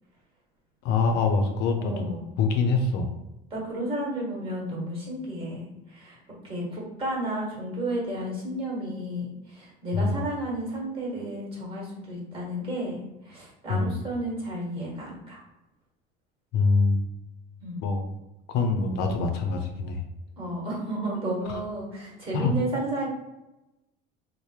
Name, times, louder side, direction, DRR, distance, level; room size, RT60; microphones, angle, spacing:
voice 1, 0.8-2.1 2.4-3.1 9.9-10.1 13.7-13.9 16.5-17.0 17.8-18.1 18.5-20.0 21.4-21.6 22.3-22.5, left 4 dB, 60° left, 4 dB, 0.6 m, -24 dB
voice 2, 1.8-2.3 3.5-6.2 6.4-15.4 17.6-17.8 20.4-23.1, right 1 dB, 25° right, -3 dB, 1.4 m, -32 dB
3.2 x 2.1 x 4.2 m, 0.97 s
cardioid pair, 150°, 20 cm